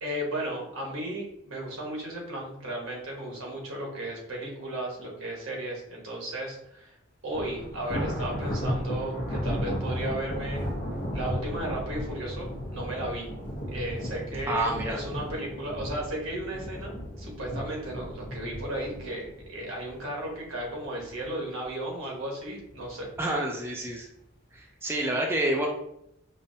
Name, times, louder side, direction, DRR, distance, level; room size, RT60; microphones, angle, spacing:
voice 1, 0.0-6.9 7.2-10.6 11.1-13.3 13.7-23.1, right 1 dB, 80° right, -1 dB, 1.1 m, -35 dB
Thunder, 7.3-20.6 21.0-21.3 21.7-21.8 22.6-23.2, equal, 50° left, 0.7 m, -34 dB
voice 2, 14.5-15.0 23.2-24.1 24.5-25.7, right 1 dB, 10° right, -1 dB, 0.3 m, -28 dB
5.4 x 2.0 x 2.6 m, 0.77 s
head